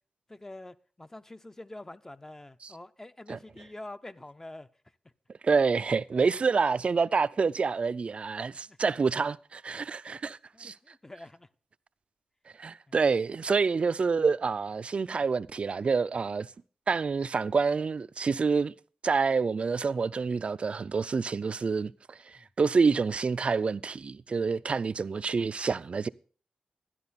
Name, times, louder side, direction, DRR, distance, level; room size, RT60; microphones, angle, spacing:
voice 1, 0.3-4.7 6.1-6.3 8.6-8.8 10.5-11.5 12.9-13.0 22.3-22.5, left 2 dB, 20° left, 0.6 m, -46 dB
voice 2, 5.4-10.7 12.6-16.5 16.9-18.7 19.0-26.1, right 5 dB, 55° right, 0.4 m, -27 dB
12.5 x 10.5 x 4.1 m
cardioid pair, 65°, 2 cm